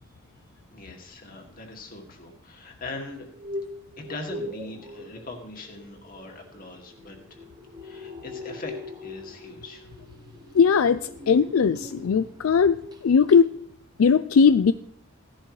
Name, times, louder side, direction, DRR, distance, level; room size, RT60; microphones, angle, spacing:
voice 1, 0.7-3.3 4.0-7.5 7.8-9.9, left 2 dB, 45° left, 2 dB, 2.2 m, -41 dB
sound 1, 3.2-12.4 12.7-13.0 13.3-13.4, left 2 dB, 20° right, 1.3 m, -41 dB
voice 2, 10.5-13.5 14.0-14.7, left 6 dB, 90° left, 13 dB, 0.4 m, -19 dB
16.0 x 11.5 x 3.2 m, 0.65 s
head